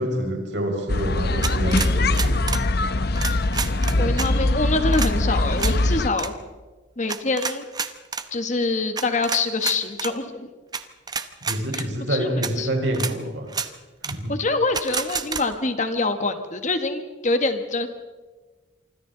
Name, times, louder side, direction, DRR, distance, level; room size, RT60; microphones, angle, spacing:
voice 1, 0.0-2.5 3.9-4.2 11.5-13.5 14.0-14.3, equal, 65° right, 1 dB, 5.3 m, -27 dB
sound 1, 0.9-6.1, left 2 dB, 55° left, 0.9 m, -22 dB
sound 2, 1.4-2.7 3.2-4.3 4.9-5.1 5.6-5.8 6.1-6.3 7.1-8.3 9.0-10.1 10.7-10.8 11.1-11.9 12.4-12.5 12.9-13.1 13.5-13.7 14.0-14.2 14.7-15.4, right 5 dB, 20° right, 0.9 m, -29 dB
voice 2, 4.0-6.3 7.0-7.6 8.3-10.5 12.1-12.3 12.6-12.7 14.3-17.9, left 3 dB, 40° left, 7 dB, 1.5 m, -25 dB
27.0 x 25.0 x 4.0 m, 1.3 s
head